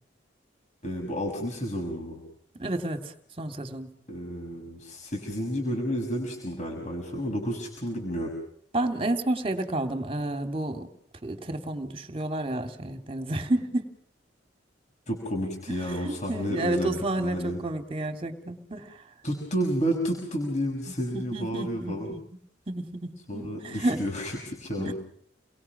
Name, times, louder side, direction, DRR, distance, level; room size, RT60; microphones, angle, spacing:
voice 1, 0.8-2.2 4.1-8.4 15.1-17.6 19.2-22.1 23.3-24.9, equal, 40° left, 0 dB, 6.3 m, -31 dB
voice 2, 2.6-3.9 8.7-10.9 11.2-13.9 15.7-15.8 16.0-19.0 21.1-22.2 22.7-24.0 24.8-24.9, right 1 dB, 30° right, 6 dB, 3.0 m, -30 dB
30.0 x 22.0 x 6.1 m, 0.65 s
head